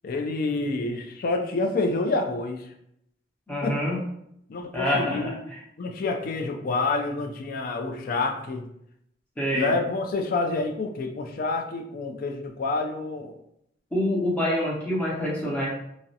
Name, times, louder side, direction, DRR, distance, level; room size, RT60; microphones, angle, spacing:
voice 1, 0.0-2.7 3.6-3.8 4.5-5.4 5.8-8.6 9.5-13.3, left 3 dB, 50° left, 4 dB, 0.3 m, -28 dB
voice 2, 3.5-4.0 4.7-5.6 9.4-9.7 13.9-15.7, equal, 10° left, -6 dB, 0.6 m, -26 dB
2.4 x 2.0 x 2.6 m, 0.75 s
head